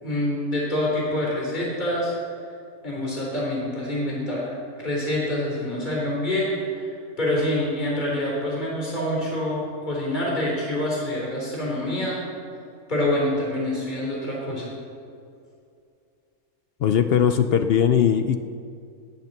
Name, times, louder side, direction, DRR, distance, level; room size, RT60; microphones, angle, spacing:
voice 1, 0.0-2.1 2.8-6.9 7.2-12.2 12.9-14.7, left 1 dB, 30° left, -4 dB, 3.5 m, -26 dB
voice 2, 16.8-18.4, left 8 dB, 65° left, 9 dB, 0.6 m, -19 dB
19.0 x 7.4 x 6.6 m, 2.4 s
omnidirectional pair, 1.6 m